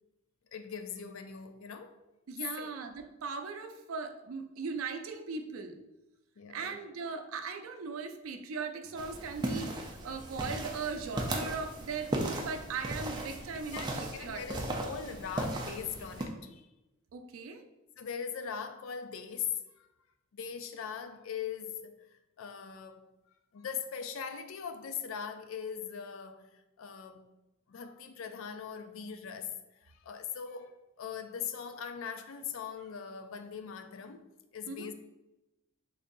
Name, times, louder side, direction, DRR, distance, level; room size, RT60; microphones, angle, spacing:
voice 1, 0.5-2.0 2.6-2.8 6.4-6.8 13.7-16.7 18.0-19.9 20.3-23.1 23.5-27.3 27.7-34.9, left 7 dB, 75° left, 0.4 m, -41 dB
voice 2, 2.3-5.8 6.5-14.4 17.1-17.6 34.7-34.9, right 4 dB, 85° right, 0.4 m, -39 dB
sound 1, 9.0-16.3, right 1 dB, 20° right, 0.4 m, -37 dB
3.3 x 2.6 x 3.9 m
head